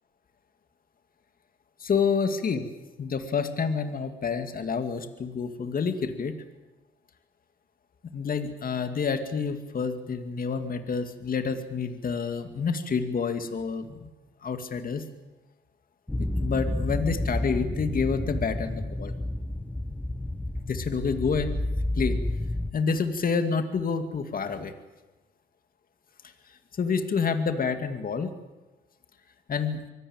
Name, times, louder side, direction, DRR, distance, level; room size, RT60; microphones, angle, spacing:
voice 1, 1.8-2.7 3.0-6.4 8.0-14.1 14.4-15.0 16.1-19.1 20.6-21.6 22.0-22.2 22.7-24.7 26.7-28.3 29.5-29.8, left 5 dB, 45° left, 8 dB, 2.4 m, -28 dB
sound 1, 16.1-22.7, left 1 dB, 5° left, 1.1 m, -30 dB
24.0 x 17.5 x 8.9 m, 1.2 s
cardioid pair, 90°, 20 cm